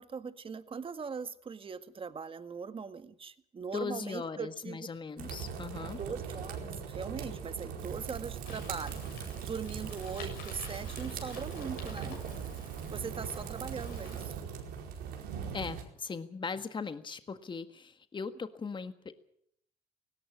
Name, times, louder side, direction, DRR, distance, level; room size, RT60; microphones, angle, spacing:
voice 1, 0.0-4.9 6.0-9.0 9.4-12.2 12.9-14.3, right 5 dB, 35° right, 11 dB, 1.8 m, -40 dB
voice 2, 3.7-6.0 15.5-19.1, left 5 dB, 30° left, 10 dB, 1.6 m, -39 dB
sound 1, 5.2-15.8, right 6 dB, 80° right, 4.7 m, -41 dB
Rain, 7.8-14.4, right 12 dB, 65° right, 0.9 m, -44 dB
sound 2, 8.4-14.2, left 6 dB, 85° left, 6.9 m, -50 dB
18.0 x 17.0 x 8.8 m, 0.68 s
supercardioid pair, 75°, 16 cm